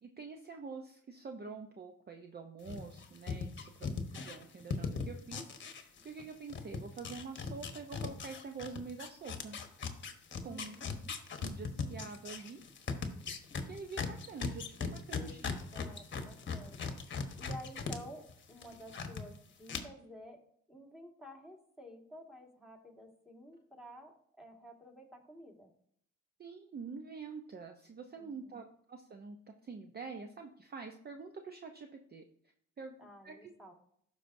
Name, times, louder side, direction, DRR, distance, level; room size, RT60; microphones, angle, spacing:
voice 1, 0.0-9.6 10.4-10.8 11.4-12.6 13.6-15.5 26.4-32.2 32.8-33.5, right 4 dB, 35° right, 5 dB, 0.6 m, -46 dB
sound 1, 2.7-6.2 6.5-18.0 18.3-19.2 19.7-19.8, left 5 dB, 40° left, 1.1 m, -39 dB
voice 2, 10.4-11.2 15.1-15.5 15.7-16.9 17.4-20.4 20.7-25.7 28.2-28.6 33.0-33.7, equal, ahead, -1 dB, 1.7 m, -52 dB
12.0 x 4.8 x 2.6 m, 0.66 s
cardioid pair, 90°, 30 cm